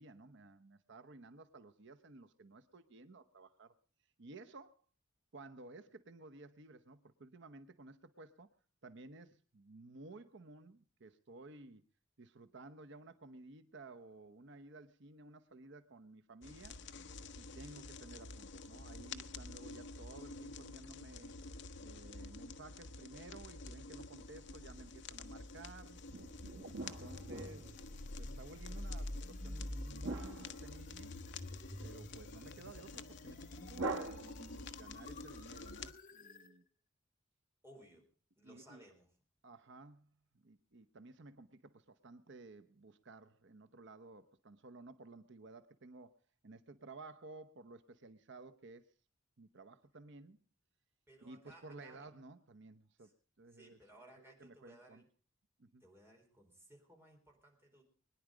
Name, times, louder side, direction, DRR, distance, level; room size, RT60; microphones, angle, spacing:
voice 1, 0.0-3.7 4.2-4.8 5.3-8.5 8.8-11.8 12.2-16.8 17.3-21.3 21.8-26.0 26.8-27.9 28.2-31.1 31.8-36.6 38.4-38.8 39.4-40.1 40.4-46.1 46.4-48.9 49.4-50.4 51.2-55.0 55.6-55.8, right 2 dB, 60° right, 10 dB, 0.8 m, -55 dB
sound 1, 16.4-35.9, left 3 dB, 60° left, 0.8 m, -50 dB
sound 2, 24.4-36.5, left 1 dB, 45° left, 1.6 m, -49 dB
sound 3, 26.1-28.1 30.0-31.4 33.7-34.8, right 3 dB, 80° right, 1.3 m, -44 dB
voice 2, 37.6-38.1 38.4-39.1 51.1-52.1 53.0-53.1 53.5-55.0 55.8-57.8, right 1 dB, 10° right, 0 dB, 4.2 m, -60 dB
22.0 x 10.0 x 5.0 m, 0.40 s
head